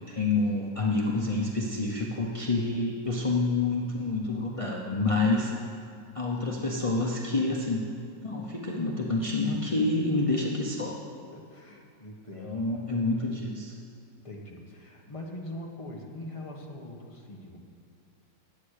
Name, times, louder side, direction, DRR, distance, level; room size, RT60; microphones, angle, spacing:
voice 1, 0.0-5.5 6.1-7.8 8.2-11.0 12.4-13.7, left 3 dB, 45° left, -2 dB, 0.4 m, -28 dB
voice 2, 11.3-12.7 14.2-17.6, left 1 dB, 20° left, -1 dB, 1.2 m, -42 dB
10.5 x 8.5 x 6.6 m, 2.4 s
omnidirectional pair, 2.0 m